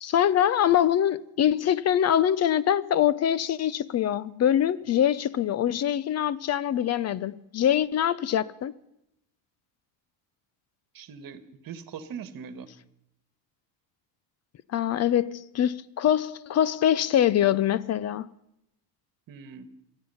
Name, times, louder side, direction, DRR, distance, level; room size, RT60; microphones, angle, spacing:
voice 1, 0.0-8.7 14.7-18.3, left 10 dB, 35° left, 0.5 m, -24 dB
voice 2, 10.9-12.7 19.3-19.7, right 6 dB, 45° right, 1.6 m, -41 dB
26.5 x 9.0 x 5.6 m
supercardioid pair, 105°, 49 cm